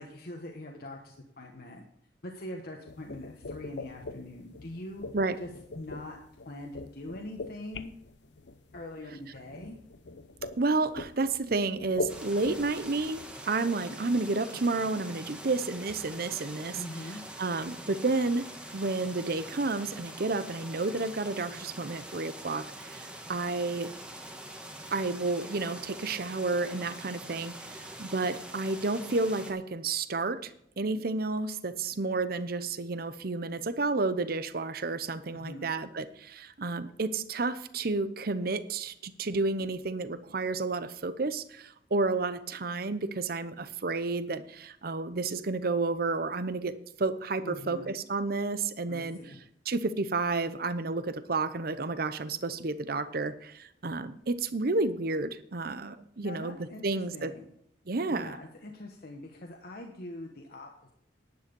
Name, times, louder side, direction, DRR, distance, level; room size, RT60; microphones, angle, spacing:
voice 1, 0.0-1.8 2.2-5.1 5.4-5.5 5.7-6.2 6.4-7.9 8.7-9.8 16.7-17.2 35.3-35.7 47.4-47.9 48.9-49.4 56.2-57.5 58.1-60.7, left 1 dB, 55° left, 1 dB, 1.3 m, -43 dB
sound 1, 2.9-13.4, left 2 dB, 80° left, 0.7 m, -42 dB
voice 2, 10.6-16.8 17.4-23.9 24.9-49.2 49.7-56.6 56.8-57.3 57.9-58.4, right 3 dB, 55° right, 13 dB, 0.8 m, -31 dB
sound 2, 12.1-29.5, right 1 dB, 5° right, 1.5 m, -44 dB
10.5 x 9.2 x 5.3 m, 0.71 s
head